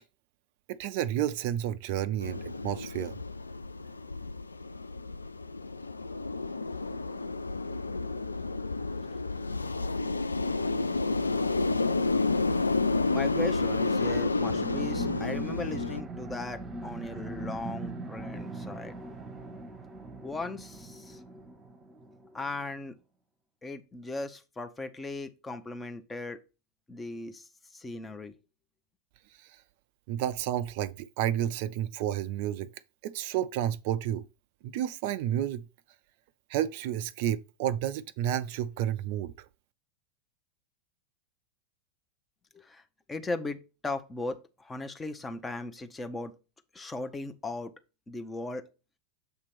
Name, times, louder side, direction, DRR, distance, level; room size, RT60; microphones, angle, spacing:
voice 1, 0.7-3.2 30.1-32.7 33.0-34.2 34.6-35.6 36.5-39.3, right 11 dB, 50° right, 0.3 m, -31 dB
sound 1, 2.2-16.0, left 3 dB, 80° left, 0.3 m, -30 dB
voice 2, 13.1-19.0 20.2-21.2 22.3-23.0 23.6-26.4 26.9-28.3 42.5-42.8 43.1-46.3 46.7-47.7 48.1-48.7, left 2 dB, 15° left, 0.7 m, -37 dB
sound 2, 14.4-22.6, right 2 dB, 20° right, 1.0 m, -40 dB
6.8 x 2.9 x 5.9 m
figure-of-eight pair, 90°, 0 cm